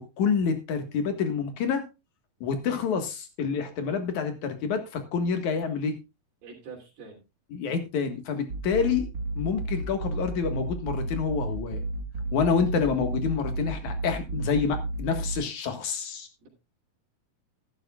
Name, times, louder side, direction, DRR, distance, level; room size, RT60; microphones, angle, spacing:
voice 1, 0.0-1.8 2.4-5.9 7.5-9.1 9.4-11.8 12.3-16.3, left 6 dB, 55° left, 6 dB, 2.7 m, -28 dB
voice 2, 6.4-7.2 16.4-16.5, right 5 dB, 75° right, -5 dB, 5.2 m, -45 dB
sound 1, 8.5-15.3, right 2 dB, 55° right, 1.3 m, -33 dB
15.0 x 12.5 x 2.4 m, 0.27 s
omnidirectional pair, 4.6 m